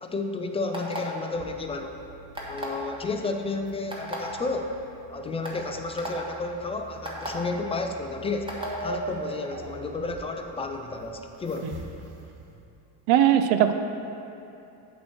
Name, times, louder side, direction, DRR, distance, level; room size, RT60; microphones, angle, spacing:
voice 1, 0.0-2.0 2.5-4.8 5.1-8.5 8.8-11.7, left 3 dB, 15° left, 4 dB, 0.3 m, -32 dB
sound 1, 0.7-1.2 2.3-2.8 3.9-4.2 4.9-5.0 5.4-5.6 6.0-6.1 7.0-7.3 8.5-8.7, equal, 10° right, 1.3 m, -34 dB
sound 2, 1.3-12.6, right 2 dB, 50° right, 0.9 m, -42 dB
voice 2, 13.1-13.7, right 10 dB, 75° right, 9 dB, 0.6 m, -19 dB
8.2 x 3.1 x 6.2 m, 2.8 s
supercardioid pair, 95°, 48 cm